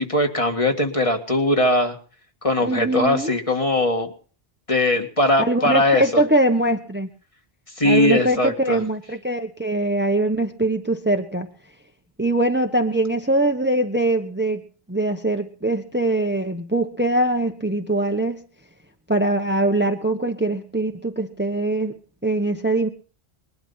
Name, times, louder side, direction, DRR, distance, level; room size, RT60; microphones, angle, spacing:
voice 1, 0.0-2.0 2.4-4.1 4.7-6.2 7.8-8.8, left 1 dB, 30° left, 3 dB, 2.0 m, -20 dB
voice 2, 2.6-3.4 5.4-7.1 7.8-11.5 12.2-14.6 14.9-18.4 19.1-22.0 22.2-22.9, right 1 dB, 10° right, 5 dB, 1.1 m, -22 dB
21.0 x 12.0 x 5.7 m, 0.42 s
omnidirectional pair, 1.0 m